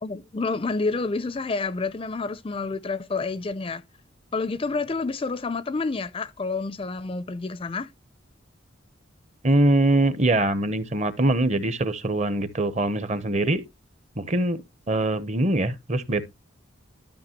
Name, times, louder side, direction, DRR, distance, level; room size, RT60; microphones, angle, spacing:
voice 1, 0.0-3.8 4.3-7.9, left 3 dB, 25° left, 0.4 m, -29 dB
voice 2, 9.4-13.6 14.2-14.6 14.9-16.3, right 1 dB, 35° right, 0.8 m, -23 dB
12.5 x 5.6 x 3.0 m
head